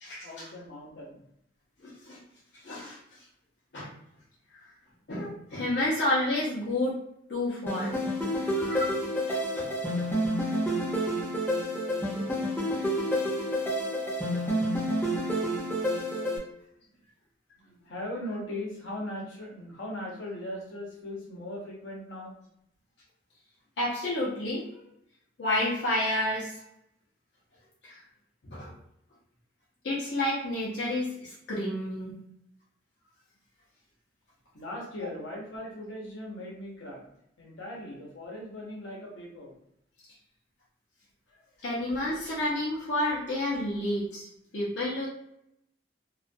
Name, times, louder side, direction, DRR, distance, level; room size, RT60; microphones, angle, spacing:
voice 1, 0.2-1.2 8.3-8.8 17.6-22.3 34.5-37.0 37.4-39.5, left 1 dB, 85° left, -3 dB, 0.9 m, -39 dB
voice 2, 1.8-2.2 2.6-3.0 3.7-3.9 5.1-6.9 7.3-7.9 8.6-8.9 9.3-9.9 23.8-24.7 25.4-26.5 27.8-27.9 28.4-28.7 29.8-32.2 41.6-44.3 44.5-45.1, left 1 dB, 60° left, -7 dB, 0.6 m, -30 dB
sound 1, 7.7-16.4, equal, 10° left, 0.5 m, -29 dB
2.3 x 2.2 x 2.5 m, 0.76 s
head